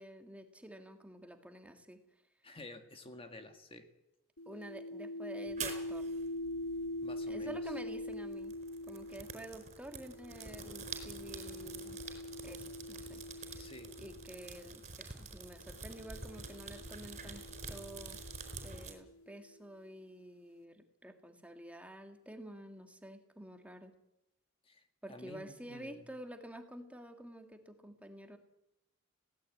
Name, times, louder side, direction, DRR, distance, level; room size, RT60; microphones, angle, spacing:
voice 1, 0.0-2.0 4.5-6.1 7.3-8.5 8.9-12.0 12.4-13.7 14.0-18.2 18.6-23.9 25.0-28.4, right 1 dB, 5° right, 5 dB, 1.9 m, -50 dB
voice 2, 2.4-3.9 7.0-7.6 13.1-13.2 13.6-13.9 24.6-25.9, left 2 dB, 25° left, 6 dB, 1.9 m, -51 dB
sound 1, 4.4-14.7 15.6-19.4, left 1 dB, 75° left, 1.1 m, -44 dB
sound 2, 5.5-18.9, right 5 dB, 35° right, 4.6 m, -48 dB
22.0 x 17.5 x 8.5 m, 0.87 s
head